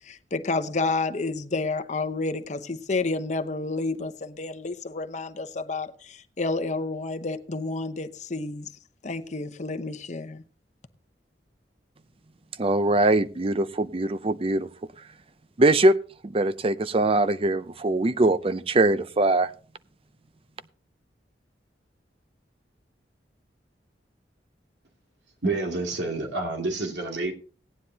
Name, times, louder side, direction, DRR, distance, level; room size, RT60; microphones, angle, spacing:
voice 1, 0.1-8.7 9.0-10.4, left 3 dB, 40° left, 0.8 m, -30 dB
voice 2, 12.6-14.7 15.6-16.0 16.2-19.5, right 2 dB, 30° right, 0.5 m, -22 dB
voice 3, 25.4-27.3, right 2 dB, 80° right, 2.5 m, -28 dB
17.5 x 9.8 x 2.8 m
head